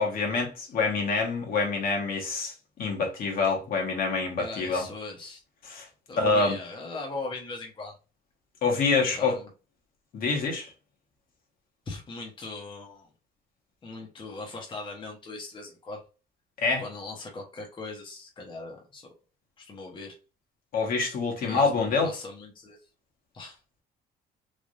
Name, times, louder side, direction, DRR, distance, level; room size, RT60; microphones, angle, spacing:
voice 1, 0.0-4.8 5.7-5.9 6.2-6.6 8.6-9.4 10.1-10.7 16.6-16.8 20.7-22.1, left 4 dB, 60° left, 1.2 m, -26 dB
voice 2, 4.4-5.4 6.1-7.9 9.0-9.5 11.9-13.1 13.8-16.0 16.8-19.1 19.6-20.1 21.4-22.8 23.3-23.6, left 3 dB, 30° left, 0.9 m, -39 dB
3.3 x 2.5 x 2.5 m
cardioid pair, 110°, 17 cm